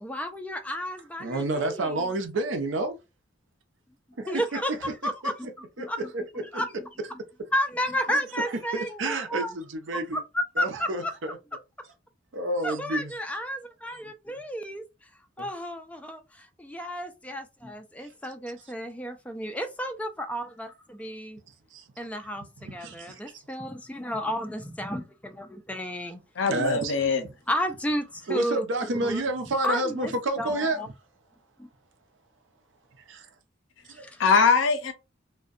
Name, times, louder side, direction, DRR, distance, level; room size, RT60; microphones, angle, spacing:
voice 1, 0.0-1.9 4.3-4.7 5.0-5.5 5.8-6.0 6.5-6.7 7.5-9.5 9.9-10.2 10.6-10.9 12.6-14.8 15.4-21.4 22.0-22.4 22.7-26.2 27.5-29.2 29.6-30.9 31.6-31.7 33.9-34.2, equal, 5° left, 0.3 m, -32 dB
voice 2, 1.2-3.0 4.2-5.3 5.8-5.9 6.1-6.2 8.1-10.2 10.6-11.4 12.3-13.1 13.9-14.0 15.4-15.5 21.7-21.8 22.6-23.3 26.5-26.9 28.3-30.8 33.1-33.3 33.9-34.1, right 2 dB, 70° right, 0.6 m, -30 dB
voice 3, 26.4-27.2 34.2-34.9, left 5 dB, 75° left, 0.6 m, -22 dB
2.6 x 2.1 x 2.4 m
head